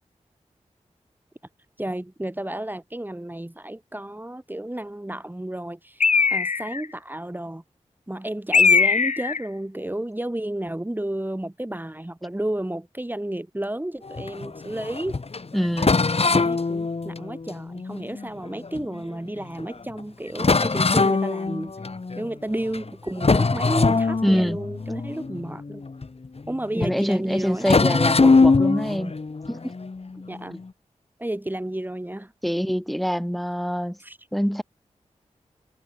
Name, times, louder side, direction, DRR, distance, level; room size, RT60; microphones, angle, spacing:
voice 1, 1.8-6.0 6.3-7.6 8.1-15.2 16.3-21.7 22.2-25.8 26.5-27.7 30.3-30.6 31.2-32.3 34.0-34.2, right 1 dB, 15° right, 5.5 m, -32 dB
Bird, 6.0-6.9 8.5-9.4, left 5 dB, 75° left, 2.5 m, -19 dB
sound 1, 14.0-19.0 19.6-19.7 20.0-20.1 20.4-22.3 22.7-22.9 23.2-26.6 26.8-27.0 27.6-30.6, left 4 dB, 50° left, 3.6 m, -23 dB
voice 2, 15.5-16.0 24.2-24.6 26.7-29.1 29.5-29.7 32.4-34.0 34.3-34.6, equal, ahead, 5.2 m, -25 dB
cardioid pair, 55°, 13 cm